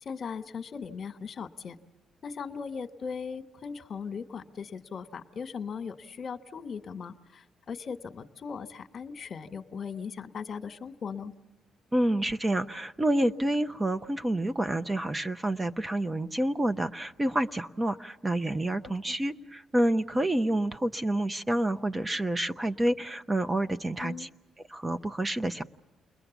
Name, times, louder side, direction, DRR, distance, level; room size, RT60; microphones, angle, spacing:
voice 1, 0.0-1.8 2.2-11.3 19.0-19.2 24.0-24.3, left 6 dB, 50° left, 8 dB, 1.3 m, -38 dB
voice 2, 11.9-24.3 24.7-25.6, right 1 dB, 20° right, 9 dB, 0.7 m, -28 dB
29.5 x 21.0 x 7.1 m, 1.1 s
cardioid pair, 90°, 0 cm